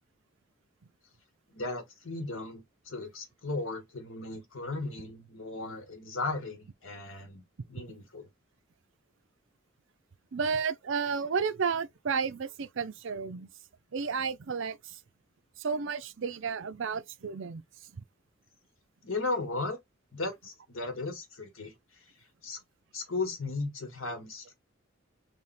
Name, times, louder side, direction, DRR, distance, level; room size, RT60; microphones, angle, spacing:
voice 1, 1.5-8.3 19.0-19.8 20.1-21.7 22.4-22.6 22.9-24.5, left 3 dB, 80° left, 1.6 m, -36 dB
voice 2, 10.3-13.5 13.9-15.0 15.6-17.6 17.9-18.0, right 5 dB, 65° right, 0.5 m, -32 dB
3.6 x 2.8 x 4.2 m
head